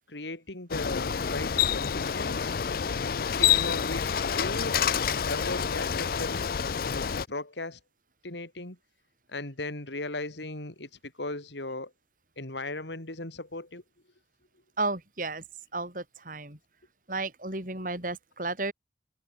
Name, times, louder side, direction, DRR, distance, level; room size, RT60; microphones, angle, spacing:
voice 1, 0.1-2.6 3.2-4.8 5.3-6.5 6.8-7.8 8.2-8.8 9.3-11.9 12.4-13.8, left 2 dB, 85° left, 4.0 m, -37 dB
Bicycle, 0.7-7.3, left 8 dB, 55° left, 0.5 m, -28 dB
voice 2, 14.8-15.4 15.7-16.6 17.1-18.7, right 3 dB, 50° right, 5.0 m, -33 dB
head